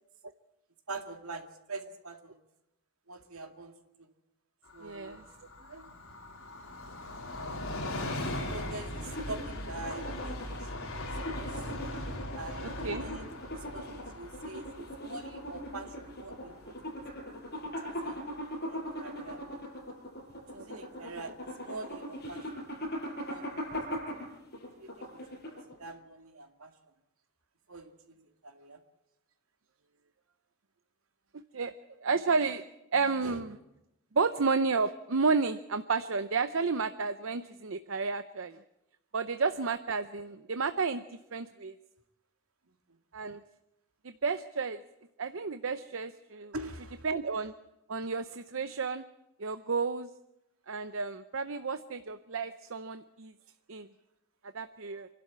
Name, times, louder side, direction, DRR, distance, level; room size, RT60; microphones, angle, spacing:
voice 1, 0.9-2.4 3.1-3.7 4.0-4.1 4.7-5.2 5.6-5.9 8.1-10.9 11.3-11.6 12.3-13.3 13.5-14.7 15.0-17.0 17.6-18.2 18.7-19.4 20.5-22.6 23.3-24.0 24.3-24.4 24.8-25.2 25.5-26.7 27.7-28.8 33.2-33.4 42.9-43.0 46.5-47.1, right 2 dB, 80° right, 5 dB, 2.2 m, -44 dB
Train, 4.6-18.0 18.3-18.4, left 1 dB, 75° left, 3.7 m, -40 dB
voice 2, 4.8-5.2 12.8-13.1 14.8-14.9 20.5-20.7 23.7-23.8 24.1-24.2 31.5-31.7 32.0-32.6 32.9-33.5 34.1-38.6 39.1-41.8 43.1-43.4 44.0-44.8 45.2-46.5 47.0-47.5 47.9-49.0 49.4-50.1 50.7-53.3 53.7-53.9 54.5-55.1, right 4 dB, 65° right, 11 dB, 0.7 m, -31 dB
sound 1, 9.0-25.8, equal, 50° left, 6.5 m, -40 dB
26.0 x 12.0 x 8.6 m, 0.92 s
head